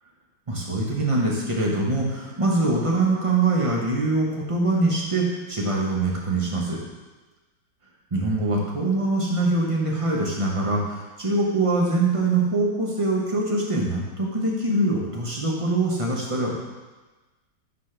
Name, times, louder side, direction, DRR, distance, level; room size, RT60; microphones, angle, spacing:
voice 1, 0.5-6.8 8.1-16.5, right 2 dB, 25° right, -2 dB, 0.7 m, -23 dB
9.4 x 4.2 x 3.3 m, 1.2 s
omnidirectional pair, 1.9 m